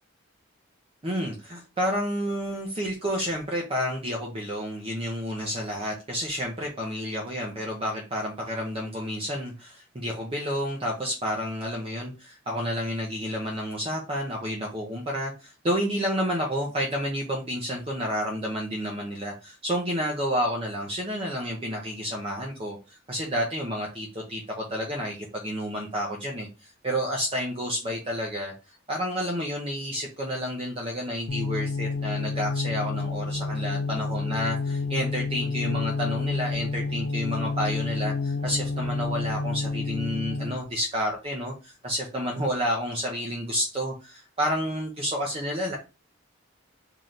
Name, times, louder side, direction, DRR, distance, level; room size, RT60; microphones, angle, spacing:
voice 1, 1.0-28.5 28.9-45.8, equal, 30° right, -1 dB, 0.6 m, -30 dB
sound 1, 31.3-40.6, left 3 dB, 55° left, 0.4 m, -29 dB
3.2 x 2.8 x 3.8 m, 0.30 s
head